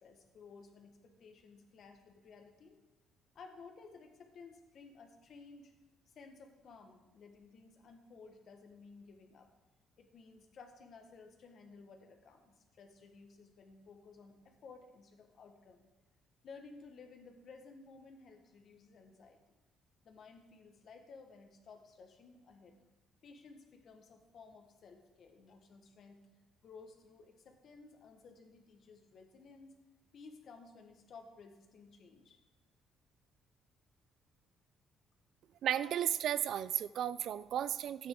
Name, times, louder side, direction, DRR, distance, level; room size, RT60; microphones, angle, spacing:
voice 1, 0.0-2.8 3.3-5.7 6.1-9.5 10.0-15.9 16.4-19.4 20.0-22.7 23.2-26.2 26.6-29.8 30.1-32.4, left 4 dB, 50° left, 5 dB, 1.5 m, -56 dB
voice 2, 35.6-38.1, right 10 dB, 60° right, 16 dB, 0.3 m, -34 dB
13.0 x 9.5 x 3.8 m, 1.1 s
cardioid pair, 130°, 0 cm